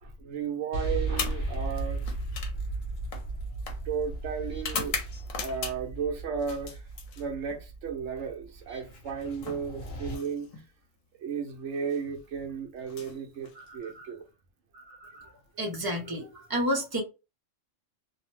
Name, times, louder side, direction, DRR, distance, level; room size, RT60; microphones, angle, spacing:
voice 1, 0.0-2.0 3.8-5.0 5.4-6.9 7.2-10.6 11.2-14.2 14.7-15.4 16.3-16.5, right 6 dB, 65° right, 1.0 m, -34 dB
sound 1, 0.7-10.2, right 2 dB, 55° left, 1.1 m, -36 dB
sound 2, 1.1-6.0 6.4-7.6 8.8-10.7 11.7-12.0 12.8-14.0, left 5 dB, 75° left, 1.1 m, -39 dB
voice 2, 15.6-17.0, equal, 30° right, 0.4 m, -29 dB
2.7 x 2.0 x 3.1 m
omnidirectional pair, 1.3 m